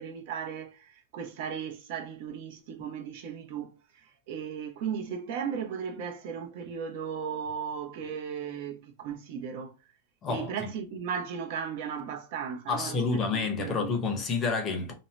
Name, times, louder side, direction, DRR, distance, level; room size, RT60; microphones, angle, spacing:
voice 1, 0.0-3.7 4.3-9.7 10.3-14.0, right 7 dB, 55° right, 0.7 m, -36 dB
voice 2, 10.2-10.7 12.7-14.9, left 4 dB, 20° left, 0.6 m, -29 dB
2.7 x 2.1 x 3.2 m
supercardioid pair, 160°, 0 cm